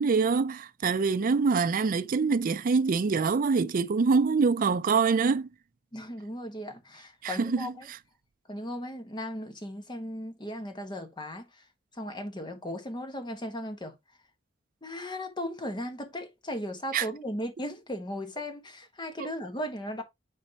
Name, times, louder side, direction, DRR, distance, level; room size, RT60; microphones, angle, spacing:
voice 1, 0.0-5.5 7.2-8.0 16.9-17.1 19.2-19.3, right 4 dB, 45° right, 0.4 m, -25 dB
voice 2, 5.9-7.9 8.5-11.6 11.9-13.9 14.8-20.0, equal, 25° left, 1.4 m, -37 dB
10.5 x 4.2 x 2.9 m
head